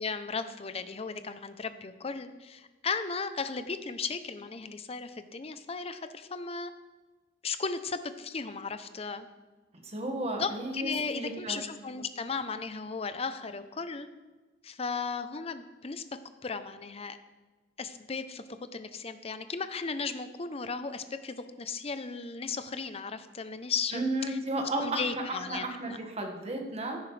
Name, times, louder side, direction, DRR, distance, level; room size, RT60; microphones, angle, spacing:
voice 1, 0.0-6.7 7.4-9.3 10.3-14.1 14.6-16.0 16.4-17.2 17.8-18.4 18.7-26.0, left 4 dB, 35° left, 11 dB, 0.7 m, -36 dB
voice 2, 9.8-11.6 23.9-27.0, right 1 dB, 35° right, 2 dB, 1.8 m, -33 dB
16.0 x 10.0 x 3.3 m, 1.3 s
head